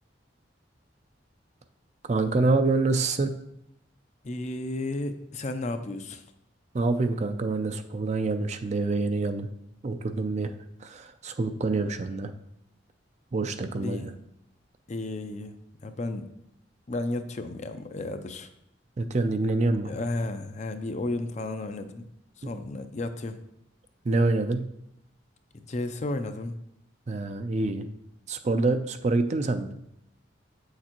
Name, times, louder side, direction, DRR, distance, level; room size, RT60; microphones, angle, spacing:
voice 1, 2.0-3.3 6.7-9.5 9.8-10.5 10.8-12.3 13.3-14.1 19.0-19.9 24.1-24.7 27.1-27.8 28.3-29.7, right 3 dB, 35° right, 8 dB, 0.4 m, -26 dB
voice 2, 4.2-6.2 13.7-14.2 14.9-15.6 15.8-16.3 16.9-18.5 19.9-22.1 22.4-23.4 25.5-26.6, left 2 dB, 40° left, 9 dB, 0.5 m, -33 dB
8.3 x 6.5 x 3.0 m, 0.79 s
head